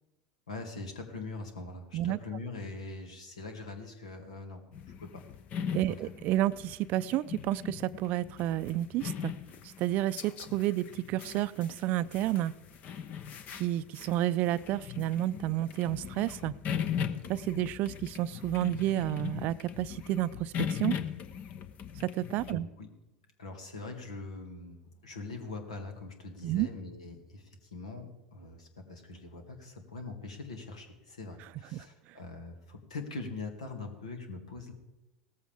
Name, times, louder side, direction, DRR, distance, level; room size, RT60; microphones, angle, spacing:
voice 1, 0.5-5.3 5.8-6.1 22.5-22.9 23.4-34.7, left 3 dB, 80° left, 4 dB, 2.1 m, -42 dB
sound 1, 4.7-22.5, left 8 dB, 45° left, 0.9 m, -39 dB
voice 2, 5.7-9.3 9.8-12.5 13.5-16.5 17.3-21.0 22.0-22.7 26.4-26.7 31.7-31.8, right 14 dB, 50° right, 17 dB, 0.5 m, -30 dB
17.0 x 14.0 x 3.6 m, 1.0 s
hypercardioid pair, 80°, 4 cm